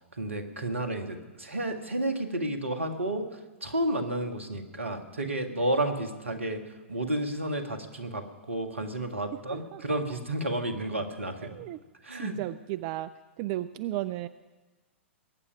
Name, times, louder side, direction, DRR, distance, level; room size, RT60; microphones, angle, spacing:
voice 1, 0.2-3.2 3.6-6.6 6.9-11.5 12.0-12.4, right 1 dB, 75° right, 6 dB, 1.7 m, -31 dB
voice 2, 9.5-9.8 11.5-11.8 12.1-13.1 13.4-14.3, right 15 dB, 35° right, 14 dB, 0.4 m, -34 dB
21.5 x 8.8 x 5.9 m, 1.2 s
figure-of-eight pair, 105°, 7 cm